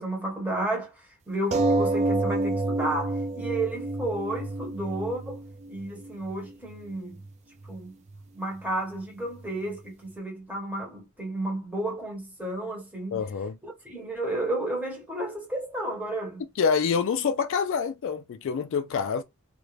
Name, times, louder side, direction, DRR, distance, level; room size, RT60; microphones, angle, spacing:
voice 1, 0.0-5.4 5.7-7.2 7.7-7.9 8.3-13.2 13.6-16.4, right 1 dB, 5° right, 1.0 m, -32 dB
sound 1, 1.5-6.5 7.3-7.4 7.7-7.8, right 2 dB, 30° right, 0.3 m, -28 dB
voice 2, 13.1-13.6 16.6-19.2, left 6 dB, 60° left, 0.3 m, -26 dB
2.4 x 2.1 x 3.1 m
head